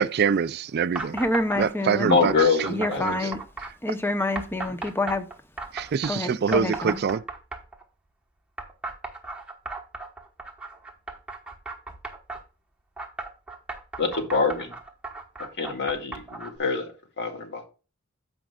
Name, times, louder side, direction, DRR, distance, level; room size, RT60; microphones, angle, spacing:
voice 1, 0.0-1.2 1.6-2.3 2.6-3.3 5.7-7.2, right 6 dB, 50° right, 0.4 m, -25 dB
sound 1, 0.9-1.7 2.1-3.7 4.3-6.1 6.5-7.8 8.6-12.4 13.0-16.6, right 3 dB, 5° right, 1.2 m, -35 dB
voice 2, 1.1-2.1 2.7-3.4 3.8-5.3 6.1-7.0, left 1 dB, 10° left, 0.8 m, -27 dB
voice 3, 2.0-3.3 14.0-14.7 15.6-16.9 17.2-17.6, left 4 dB, 55° left, 1.9 m, -25 dB
14.5 x 5.2 x 2.4 m
head